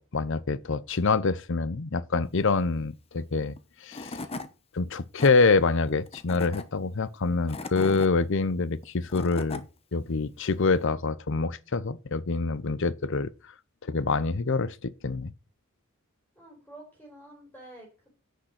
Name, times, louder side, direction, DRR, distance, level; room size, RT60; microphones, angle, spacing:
voice 1, 0.0-3.5 3.8-4.2 4.7-9.6 9.9-13.3 13.9-15.3, left 4 dB, 60° left, 0.7 m, -26 dB
Tools / Wood, 3.6-3.7 3.9-4.5 5.0-5.3 6.1-6.6 7.3-8.1 8.8-9.6, left 2 dB, 25° left, 1.0 m, -37 dB
voice 2, 16.4-18.1, right 1 dB, 10° left, 4.3 m, -49 dB
10.0 x 6.4 x 6.4 m
head